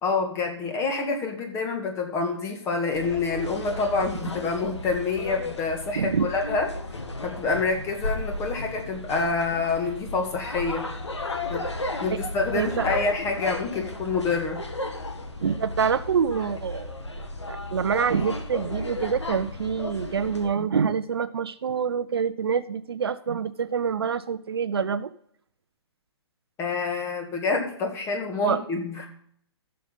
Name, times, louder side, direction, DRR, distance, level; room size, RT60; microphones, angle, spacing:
voice 1, 0.0-6.7 7.2-10.9 11.5-11.7 12.0-14.6 26.6-29.1, left 4 dB, 20° left, 3 dB, 1.7 m, -27 dB
sound 1, 2.9-20.5, left 2 dB, 80° left, 1.5 m, -34 dB
voice 2, 6.0-6.3 12.5-12.9 15.4-25.1 28.4-28.6, right 6 dB, 60° right, 14 dB, 0.5 m, -26 dB
14.5 x 6.6 x 4.0 m, 0.67 s
figure-of-eight pair, 120°, 14 cm